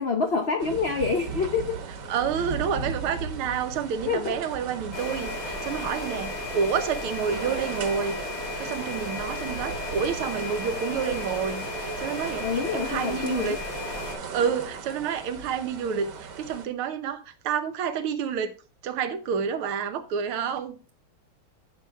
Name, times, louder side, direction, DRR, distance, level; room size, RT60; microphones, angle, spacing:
voice 1, 0.0-1.8 4.1-4.3 12.4-13.6, left 4 dB, 80° left, 0.5 m, -27 dB
sound 1, 0.6-16.7, right 4 dB, 55° right, 1.7 m, -38 dB
voice 2, 2.1-13.6 14.3-18.5 18.8-20.8, right 7 dB, 85° right, 1.8 m, -29 dB
sound 2, 4.9-14.1, left 2 dB, 40° left, 2.6 m, -34 dB
12.5 x 7.4 x 2.3 m
omnidirectional pair, 2.3 m